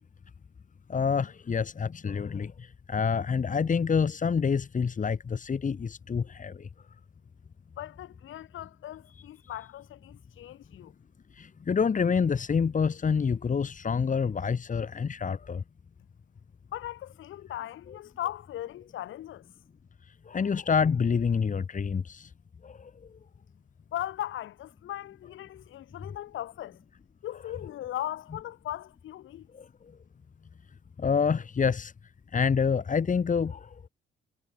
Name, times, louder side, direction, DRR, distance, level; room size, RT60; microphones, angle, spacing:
voice 1, 0.9-6.7 11.4-15.6 20.3-22.3 22.6-22.9 29.5-29.7 31.0-31.9 32.3-33.8, left 6 dB, 40° left, 4.0 m, -27 dB
voice 2, 7.8-10.9 16.7-19.5 23.9-26.8 27.2-29.5, left 13 dB, 80° left, 6.2 m, -38 dB
cardioid pair, 90°, 20 cm